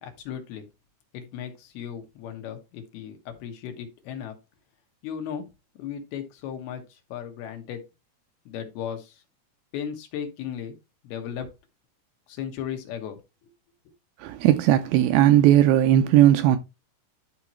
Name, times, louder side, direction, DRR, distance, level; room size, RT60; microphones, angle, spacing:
voice 1, 0.0-0.6 1.1-4.3 5.0-5.4 5.8-6.8 7.1-7.8 8.5-9.1 9.7-10.8 11.0-11.5 12.3-13.2, left 8 dB, 75° left, 3.2 m, -35 dB
voice 2, 14.2-16.6, right 12 dB, 85° right, 2.2 m, -17 dB
12.0 x 4.5 x 3.1 m
omnidirectional pair, 4.6 m